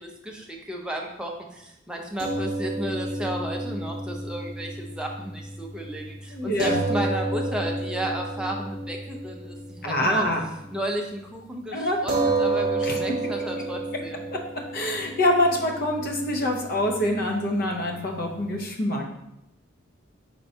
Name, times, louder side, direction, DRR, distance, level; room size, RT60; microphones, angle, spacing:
voice 1, 0.0-10.2 10.7-14.2, right 1 dB, 5° right, 0 dB, 0.5 m, -33 dB
sound 1, 2.2-10.7 11.0-11.2 12.1-18.6, right 2 dB, 45° right, 0.8 m, -31 dB
voice 2, 6.3-6.8 9.8-10.5 11.7-12.0 12.8-13.0 14.7-19.2, left 1 dB, 50° left, 1 dB, 0.7 m, -25 dB
4.5 x 4.3 x 2.7 m, 0.85 s
head